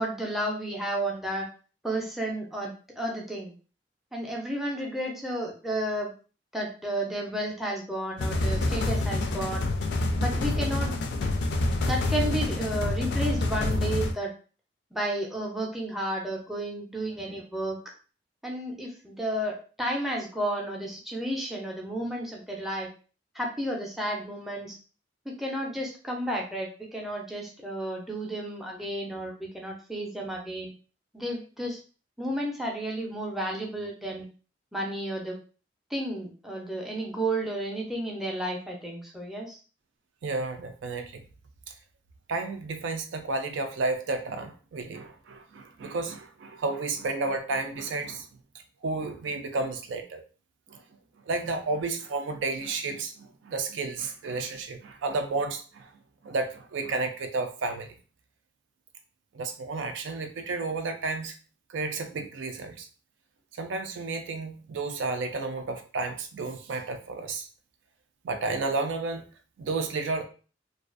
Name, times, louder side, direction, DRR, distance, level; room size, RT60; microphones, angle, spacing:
voice 1, 0.0-1.5 1.8-3.5 4.1-6.1 6.5-9.7 10.1-11.3 11.8-14.3 14.9-17.8 18.4-22.9 23.3-24.8 25.2-30.7 31.1-31.8 32.2-34.3 34.7-35.4 35.9-39.6, right 1 dB, ahead, -2 dB, 0.5 m, -32 dB
sound 1, 8.2-14.1, left 2 dB, 65° left, 0.4 m, -27 dB
voice 2, 40.2-41.2 42.3-48.3 48.8-50.2 50.7-50.8 51.3-55.9 56.2-57.9 59.3-61.4 61.7-62.9 63.6-67.5 68.2-69.2 69.6-70.3, right 3 dB, 85° right, 6 dB, 0.4 m, -32 dB
2.4 x 2.3 x 2.4 m, 0.37 s
head